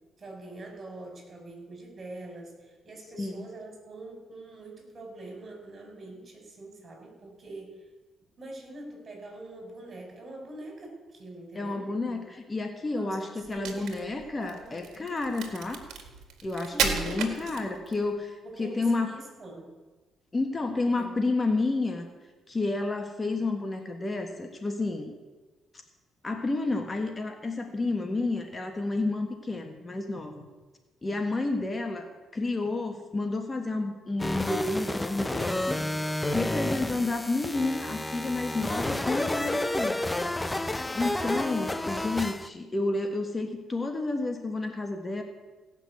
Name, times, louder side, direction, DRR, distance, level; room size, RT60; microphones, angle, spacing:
voice 1, 0.2-7.8 8.4-12.2 12.9-14.1 14.4-14.8 16.7-17.3 17.5-17.9 18.4-19.7 21.0-21.2 29.7-30.0 36.7-37.1, right 2 dB, 40° right, 2 dB, 4.8 m, -44 dB
voice 2, 11.5-15.8 16.4-19.1 20.3-22.1 22.5-25.1 26.2-30.5 31.0-32.1 32.3-35.8 36.3-40.0 40.9-45.2, left 2 dB, 25° left, 5 dB, 1.4 m, -30 dB
Crack, 13.4-18.1, right 6 dB, 80° right, 1.8 m, -33 dB
sound 1, 34.2-42.5, left 1 dB, 10° left, 0.6 m, -30 dB
17.0 x 6.1 x 8.1 m, 1.2 s
cardioid pair, 90°, 0 cm